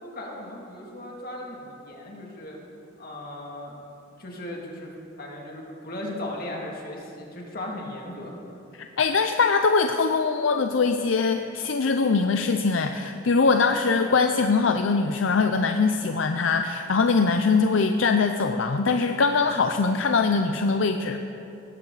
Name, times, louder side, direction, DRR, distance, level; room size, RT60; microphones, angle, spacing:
voice 1, 0.0-2.6 3.0-3.7 4.2-4.9 5.2-8.4, left 1 dB, 50° left, -2 dB, 2.5 m, -37 dB
voice 2, 9.0-21.2, left 4 dB, 75° left, 7 dB, 0.6 m, -22 dB
18.5 x 15.0 x 4.1 m, 2.8 s
head